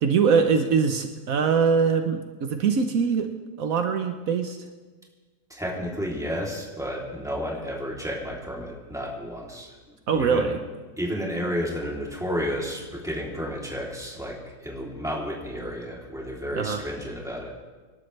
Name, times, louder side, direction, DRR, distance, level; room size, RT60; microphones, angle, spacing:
voice 1, 0.0-3.3 3.6-4.6 10.1-10.6 16.5-16.8, right 6 dB, 75° right, 6 dB, 1.3 m, -22 dB
voice 2, 5.5-9.8 10.1-10.6 11.0-17.5, equal, ahead, -4 dB, 3.1 m, -31 dB
26.5 x 12.0 x 3.3 m, 1.4 s
omnidirectional pair, 1.5 m